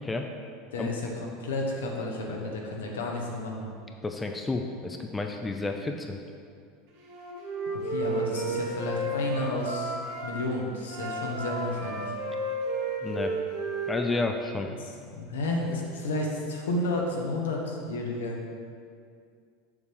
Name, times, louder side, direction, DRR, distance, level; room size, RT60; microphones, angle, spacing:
voice 1, 0.7-3.7 7.7-9.9 10.2-12.1 14.8-18.4, left 2 dB, 75° left, 0 dB, 1.1 m, -31 dB
voice 2, 4.0-6.2 13.0-13.3 13.9-14.7, left 3 dB, 15° left, 4 dB, 0.5 m, -31 dB
Wind instrument woodwind instrument, 7.0-10.2 10.8-14.4, right 2 dB, 65° right, 1.6 m, -33 dB
7.0 x 6.7 x 3.4 m, 2.2 s
figure-of-eight pair, 80°, 0 cm